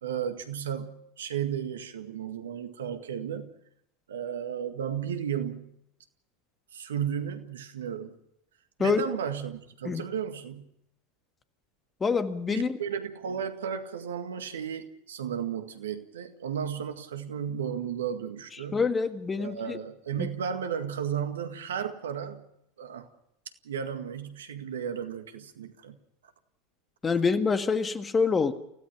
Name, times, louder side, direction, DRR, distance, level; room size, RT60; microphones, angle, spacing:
voice 1, 0.0-3.5 4.1-5.8 6.7-8.2 8.8-10.7 12.5-18.9 19.4-22.5 22.8-23.1 23.6-26.0, right 8 dB, 75° right, 8 dB, 1.9 m, -34 dB
voice 2, 12.0-12.8 18.7-19.8 20.2-20.3 27.0-28.5, left 5 dB, 20° left, 9 dB, 1.7 m, -26 dB
29.0 x 16.5 x 5.9 m, 0.76 s
figure-of-eight pair, 80°, 0 cm